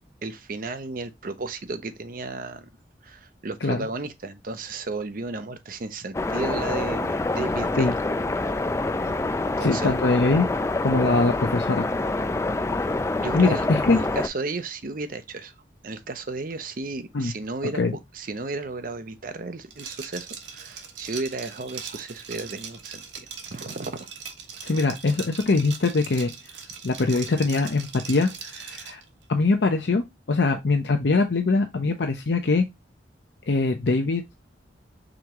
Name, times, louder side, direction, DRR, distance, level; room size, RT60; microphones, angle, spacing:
voice 1, 0.2-2.7 3.0-7.9 8.4-8.5 9.4-9.9 13.2-15.5 15.8-17.8 18.1-23.0 23.5-24.0, right 3 dB, 50° right, 0.7 m, -33 dB
sound 1, 6.1-14.3, left 2 dB, 15° left, 0.3 m, -26 dB
voice 2, 9.6-10.5 10.8-12.1 13.3-14.0 17.1-17.3 17.8-18.0 24.6-26.3 26.8-29.0 29.3-32.6 33.5-34.2, left 3 dB, 65° left, 0.6 m, -22 dB
Liquid, 19.7-29.0, right 6 dB, 80° right, 1.2 m, -40 dB
5.1 x 3.6 x 2.9 m
head